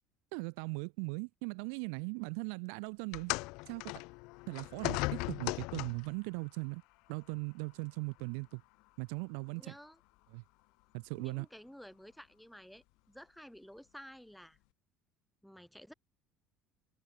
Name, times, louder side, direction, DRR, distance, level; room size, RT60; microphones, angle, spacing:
voice 1, 0.3-3.3 3.7-3.9 4.5-6.8 7.1-8.6 9.0-9.8 10.3-10.4 10.9-11.5, right 40 dB or more, 85° right, 0.6 m, -39 dB
sound 1, 3.1-6.2 7.2-7.3 8.2-8.3, left 26 dB, 80° left, 1.5 m, -37 dB
voice 2, 9.5-10.0 11.1-14.6 15.4-15.9, equal, ahead, 5.5 m, -53 dB
supercardioid pair, 100°, 0 cm